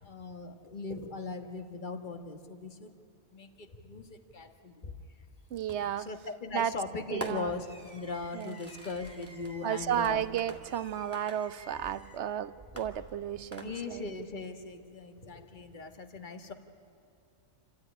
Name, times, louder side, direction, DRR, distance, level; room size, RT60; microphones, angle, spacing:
voice 1, 0.0-2.9 3.3-4.9 6.0-10.2 13.6-16.5, left 3 dB, 35° left, 7 dB, 1.6 m, -39 dB
voice 2, 5.5-6.1 6.5-6.7 7.1-7.5 8.3-8.6 9.6-14.0, right 10 dB, 60° right, 15 dB, 0.9 m, -33 dB
Fireworks, 5.7-6.1 7.2-12.2 12.8-14.1, right 1 dB, 10° left, 2.5 m, -46 dB
sound 1, 7.0-8.4 8.7-14.0 14.4-14.5, right 1 dB, 20° right, 2.3 m, -56 dB
28.5 x 14.0 x 10.0 m, 2.7 s
omnidirectional pair, 1.4 m